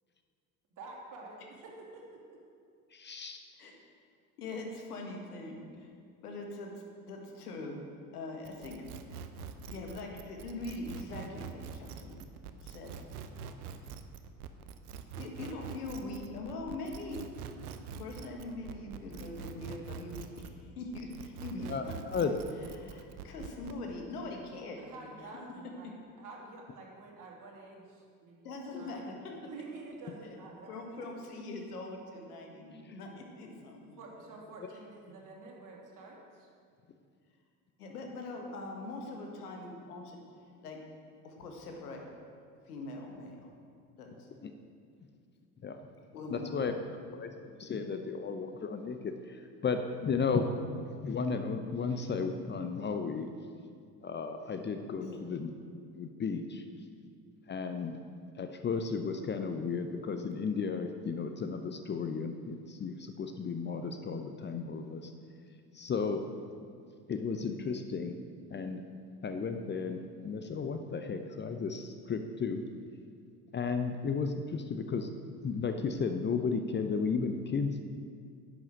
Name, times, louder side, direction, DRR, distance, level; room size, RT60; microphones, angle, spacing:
voice 1, 0.8-2.4 24.8-25.9 26.2-29.0 29.5-31.2 34.0-36.5 39.2-39.6, right 3 dB, 40° right, -2 dB, 2.8 m, -49 dB
voice 2, 2.9-3.5 21.7-22.3 44.4-44.5 45.6-45.7 46.3-46.7 47.2-47.3 47.6-50.5 51.0-53.3 54.0-55.5 55.9-56.6 57.5-58.0 58.4-65.1 65.7-66.2 67.1-68.2 68.5-68.8 69.2-72.6 73.5-75.1 75.4-77.8, left 5 dB, 25° left, 7 dB, 0.7 m, -34 dB
voice 3, 4.4-5.9 6.2-7.9 8.1-8.9 9.7-12.2 12.6-13.0 15.2-17.3 17.9-22.4 22.8-25.1 25.8-25.9 28.4-29.5 30.7-34.0 37.8-40.2 40.6-40.9 41.2-42.1 42.7-43.5 44.0-44.3 46.1-46.9 55.0-55.2, left 2 dB, 75° left, 2 dB, 1.7 m, -42 dB
sound 1, 8.4-20.6 20.9-23.8, right 7 dB, 70° right, 0.8 m, -45 dB
10.5 x 8.1 x 6.4 m, 2.2 s
figure-of-eight pair, 60°, 46 cm